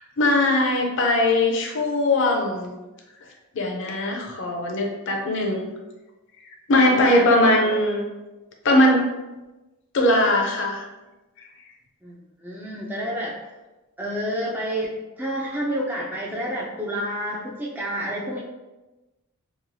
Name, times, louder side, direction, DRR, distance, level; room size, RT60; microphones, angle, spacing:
voice 1, 0.2-2.8 3.5-5.7 6.7-8.0 8.6-9.1 9.9-10.8, left 1 dB, 55° left, 1 dB, 0.5 m, -20 dB
voice 2, 6.8-7.3 12.0-13.4 14.0-18.4, equal, 10° right, -4 dB, 0.3 m, -29 dB
2.9 x 2.3 x 2.6 m, 1.1 s
head